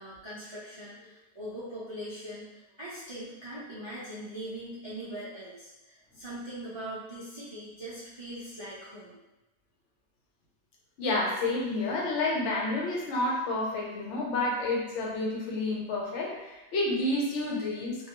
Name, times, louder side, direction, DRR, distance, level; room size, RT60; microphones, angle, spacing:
voice 1, 0.0-9.2, right 1 dB, 45° right, -10 dB, 0.3 m, -41 dB
voice 2, 11.0-18.1, left 2 dB, 75° left, -2 dB, 0.9 m, -30 dB
2.3 x 2.2 x 2.8 m, 1.0 s
omnidirectional pair, 1.2 m